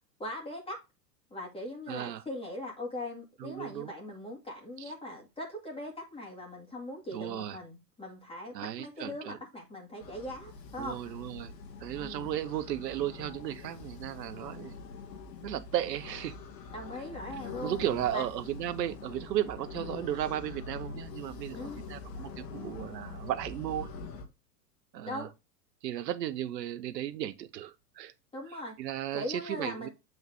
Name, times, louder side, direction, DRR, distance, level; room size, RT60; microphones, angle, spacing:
voice 1, 0.2-0.8 1.3-11.0 12.0-12.3 16.7-17.8 18.1-18.3 21.6-21.8 25.0-25.3 28.3-28.7 29.1-29.9, left 1 dB, 10° left, 2.1 m, -40 dB
voice 2, 1.9-2.2 3.4-3.9 4.8-4.9 7.1-7.6 8.5-9.4 10.8-11.5 11.8-14.8 15.4-16.4 17.6-23.9 24.9-25.3 25.8-28.1 28.8-29.9, right 12 dB, 80° right, 0.9 m, -35 dB
sound 1, 10.0-24.2, left 4 dB, 80° left, 1.9 m, -44 dB
7.9 x 4.1 x 3.3 m
hypercardioid pair, 105°, 49 cm